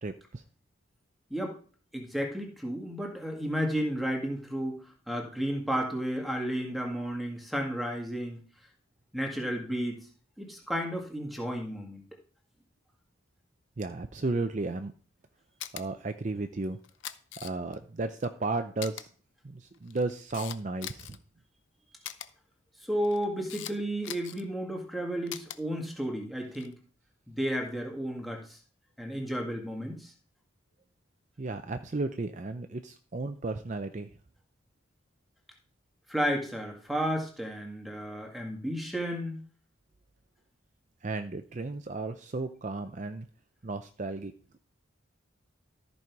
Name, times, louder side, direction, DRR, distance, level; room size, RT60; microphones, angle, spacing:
voice 1, 0.0-0.4 13.8-14.9 15.7-16.8 17.4-19.1 19.4-21.2 31.4-34.1 41.0-43.3 43.6-44.3, right 3 dB, 35° right, 8 dB, 0.5 m, -34 dB
voice 2, 1.9-4.8 5.1-8.4 9.1-10.0 10.4-12.0 22.9-26.8 27.3-28.6 29.0-30.1 36.1-39.4, equal, ahead, 1 dB, 1.8 m, -32 dB
Camera, 15.6-15.8 16.8-17.8 18.2-18.3 18.8-19.0 19.7-21.2 22.0-22.3 23.0-23.7 24.0-24.4 25.3-25.6 26.4-26.7, left 11 dB, 65° left, 0.7 m, -40 dB
13.5 x 5.4 x 4.6 m, 0.41 s
head